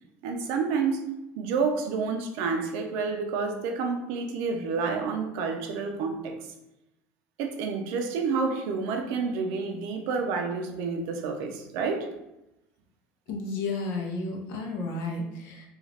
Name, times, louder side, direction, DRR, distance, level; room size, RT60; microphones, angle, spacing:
voice 1, 0.2-1.1 1.4-6.4 7.4-12.1, right 4 dB, 70° right, 4 dB, 0.5 m, -29 dB
voice 2, 13.3-15.7, left 3 dB, 60° left, 1 dB, 0.6 m, -32 dB
2.4 x 2.4 x 3.2 m, 0.91 s
cardioid pair, 160°, 5 cm